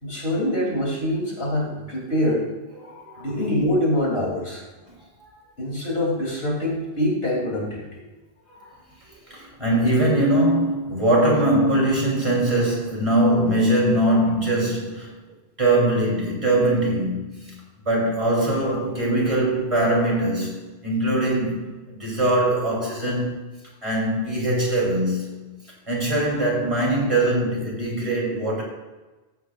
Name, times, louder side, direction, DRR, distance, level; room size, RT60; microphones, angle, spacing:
voice 1, 0.0-2.5 3.2-4.6 5.6-7.8, left 1 dB, 70° left, -4 dB, 3.2 m, -24 dB
voice 2, 2.8-3.3 5.2-5.3 8.5-8.7 9.1-15.1 15.6-17.6 17.8-23.4 23.8-25.5 25.9-28.6, right 1 dB, 30° right, -5 dB, 3.1 m, -22 dB
14.5 x 8.1 x 2.4 m, 1.2 s
omnidirectional pair, 1.1 m